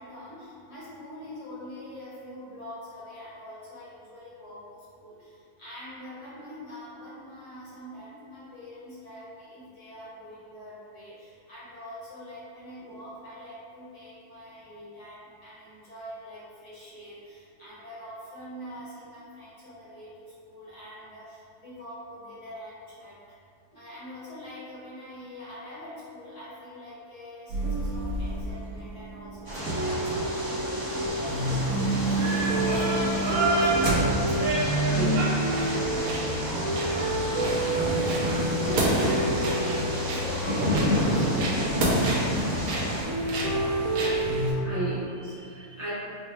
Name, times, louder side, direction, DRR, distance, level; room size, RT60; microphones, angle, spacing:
voice 1, 0.0-4.6 5.0-23.3 23.7-33.8 34.1-35.2 35.7-45.0 45.2-45.3, left 1 dB, 55° left, -10 dB, 1.4 m, -44 dB
sound 1, 27.5-44.5, right 1 dB, 75° right, 1.1 m, -27 dB
sound 2, 29.4-43.0, equal, 30° right, 0.4 m, -30 dB
voice 2, 34.9-35.2 44.4-45.9, equal, 50° right, -10 dB, 1.0 m, -36 dB
4.1 x 2.1 x 3.2 m, 2.4 s
omnidirectional pair, 1.6 m